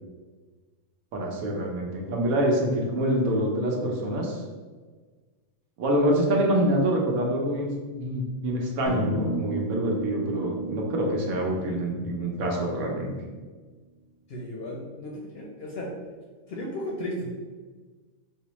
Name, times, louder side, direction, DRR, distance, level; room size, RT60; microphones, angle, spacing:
voice 1, 1.1-4.4 5.8-13.1, equal, 90° right, -1 dB, 1.2 m, -26 dB
sound 1, 8.9-13.0, right 3 dB, 30° right, 1.0 m, -34 dB
voice 2, 14.3-15.9 16.5-17.3, left 1 dB, 60° left, -2 dB, 0.7 m, -35 dB
4.6 x 2.1 x 2.9 m, 1.4 s
omnidirectional pair, 1.4 m